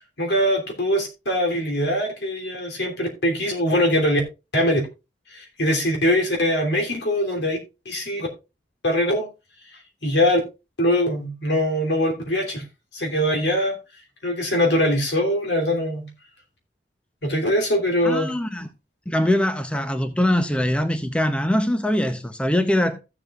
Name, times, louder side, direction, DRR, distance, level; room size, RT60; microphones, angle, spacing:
voice 1, 0.2-4.2 4.5-4.8 5.3-7.6 7.8-8.3 8.8-9.3 10.0-10.4 10.8-12.6 12.9-13.8 14.2-16.1 17.2-18.3, equal, 80° left, 3.1 m, -22 dB
voice 2, 18.0-18.7 19.1-23.0, left 1 dB, 5° left, 0.7 m, -22 dB
15.5 x 7.2 x 2.4 m
head